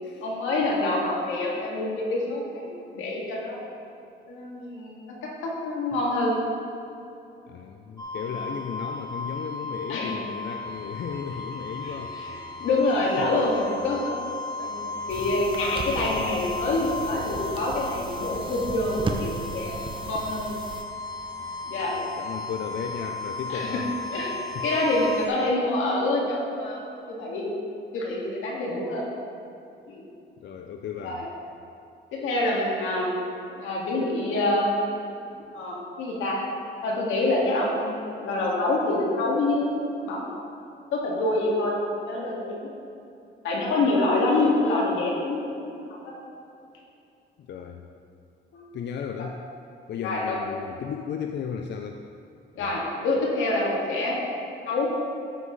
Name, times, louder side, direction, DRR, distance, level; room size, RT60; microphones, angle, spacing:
voice 1, 0.2-3.6 4.3-6.4 8.2-8.3 9.9-10.2 11.8-14.1 14.6-14.8 15.1-19.7 20.0-20.5 21.7-21.9 23.5-23.9 24.1-26.8 27.1-27.5 27.9-29.1 29.9-30.0 31.0-31.3 32.1-33.1 33.6-34.7 35.3-36.4 36.8-40.3 40.9-41.8 42.1-42.7 43.4-45.7 46.0-46.1 48.5-48.7 50.0-50.4 52.6-54.2 54.6-54.9, left 2 dB, 85° left, -3 dB, 2.1 m, -26 dB
voice 2, 7.5-12.2 13.2-13.3 21.8-23.9 24.5-24.6 30.4-31.2 47.4-47.9 48.7-49.4 49.9-52.0 52.6-52.7, left 7 dB, 60° left, 4 dB, 0.6 m, -35 dB
sound 1, 8.0-25.3, left 3 dB, 20° left, 1.6 m, -35 dB
sound 2, 15.1-20.8, right 3 dB, 25° right, 0.8 m, -36 dB
13.0 x 7.6 x 3.3 m, 2.7 s
cardioid pair, 90°, 20 cm